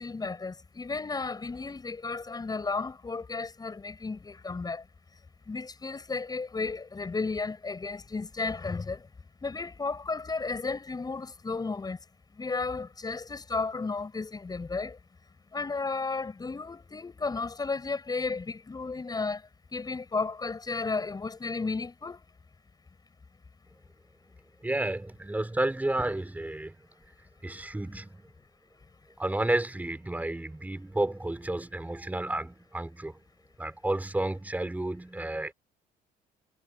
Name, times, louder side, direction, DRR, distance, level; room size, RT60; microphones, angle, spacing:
voice 1, 0.0-4.8 5.5-9.1 9.4-12.0 12.4-15.0 15.5-19.4 19.7-22.2, left 4 dB, 25° left, 7.3 m, -33 dB
voice 2, 24.6-26.8 27.4-28.3 29.2-33.2 33.6-35.5, right 1 dB, 10° right, 4.4 m, -31 dB
cardioid pair, 110°, 17 cm